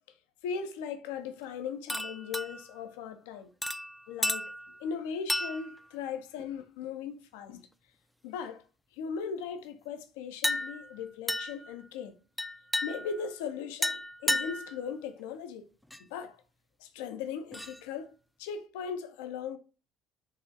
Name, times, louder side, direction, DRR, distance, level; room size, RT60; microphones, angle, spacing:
voice 1, 0.4-3.5 4.1-4.5 4.8-7.6 8.2-8.6 9.0-12.2 12.8-15.7 16.1-16.4 16.8-19.6, left 6 dB, 75° left, 0.4 m, -38 dB
sound 1, 1.9-2.8 3.6-4.8 5.3-5.8 6.4-6.6 10.4-11.0 11.3-11.7 12.4-13.3 13.8-14.8 15.9-16.0 17.5-17.8, left 1 dB, 5° left, 0.3 m, -33 dB
3.9 x 2.4 x 2.5 m
hypercardioid pair, 55°, 0 cm